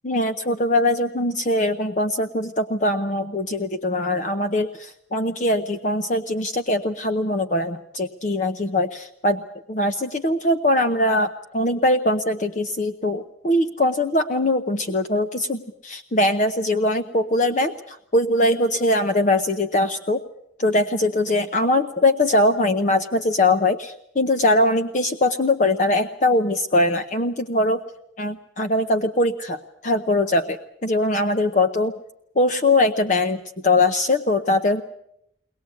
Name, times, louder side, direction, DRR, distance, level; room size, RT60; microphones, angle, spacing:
voice 1, 0.0-9.4 9.7-20.2 20.6-27.8 28.2-32.0 32.4-34.8, left 1 dB, 45° left, 7 dB, 0.8 m, -21 dB
22.0 x 19.5 x 8.4 m, 0.77 s
head